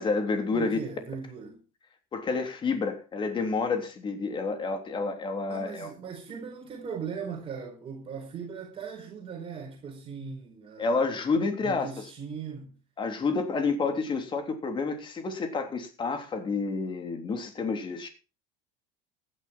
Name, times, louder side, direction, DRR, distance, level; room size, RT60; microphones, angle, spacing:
voice 1, 0.0-0.8 2.1-5.9 10.8-11.9 13.0-18.1, left 4 dB, 25° left, 3.4 m, -29 dB
voice 2, 0.5-1.6 5.5-11.0 11.6-12.8, right 6 dB, 30° right, 4.3 m, -39 dB
15.5 x 11.5 x 4.4 m
supercardioid pair, 130°, 18 cm